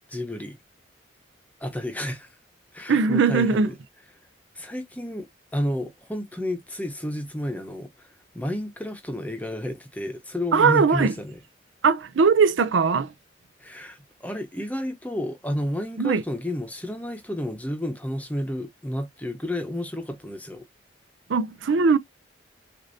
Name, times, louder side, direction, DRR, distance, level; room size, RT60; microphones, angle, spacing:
voice 1, 0.1-0.6 1.6-2.3 2.7-3.7 4.5-5.3 5.5-11.4 13.6-20.6, left 1 dB, 10° left, 0.8 m, -31 dB
voice 2, 2.9-3.7 10.5-11.1 11.8-13.1 16.0-16.2 21.3-22.0, right 5 dB, 80° right, 0.5 m, -20 dB
6.5 x 2.6 x 2.6 m
head